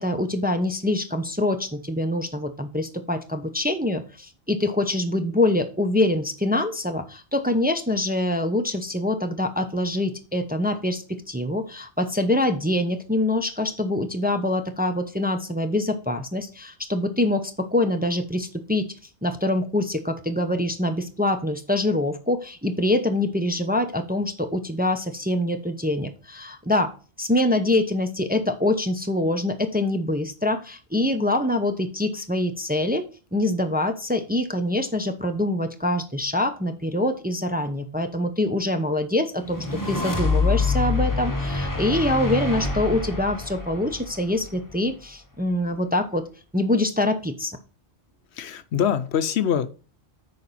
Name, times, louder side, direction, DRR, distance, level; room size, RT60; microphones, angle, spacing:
voice 1, 0.0-18.9 19.2-26.9 27.2-33.0 33.3-46.3 46.5-47.6, left 1 dB, 10° right, 6 dB, 0.7 m, -25 dB
sound 1, 39.4-44.8, left 3 dB, 20° left, 1.4 m, -26 dB
voice 2, 48.3-49.7, left 8 dB, 75° left, 12 dB, 1.0 m, -24 dB
9.1 x 5.1 x 4.1 m, 0.37 s
omnidirectional pair, 1.1 m